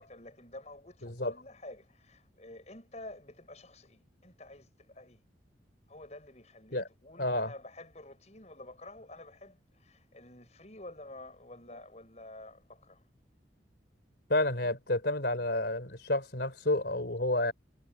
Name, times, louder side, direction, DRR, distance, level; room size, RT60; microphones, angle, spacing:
voice 1, 0.0-5.2 5.9-13.0 14.6-14.7, left 2 dB, 35° left, 7.4 m, -50 dB
voice 2, 1.0-1.3 6.7-6.8 7.2-7.5 11.7-11.8 14.3-17.5, left 1 dB, 60° left, 4.2 m, -30 dB
head